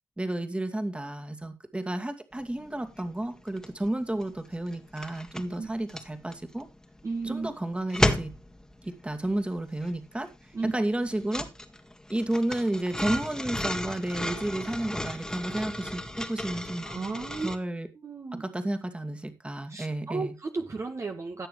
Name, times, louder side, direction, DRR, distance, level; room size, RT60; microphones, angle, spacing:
voice 1, 0.2-6.7 7.2-8.4 8.8-11.5 12.1-16.9 17.4-17.9 18.3-20.4, right 1 dB, 15° right, 7 dB, 2.2 m, -32 dB
sound 1, 2.5-2.6 2.9-17.6, left 1 dB, 10° left, 2.0 m, -33 dB
voice 2, 7.0-7.5 10.5-10.7 16.8-17.5 18.0-18.4 19.7-21.5, right 3 dB, 40° right, 4 dB, 1.7 m, -34 dB
16.5 x 6.8 x 3.2 m, 0.25 s
supercardioid pair, 55°, 8 cm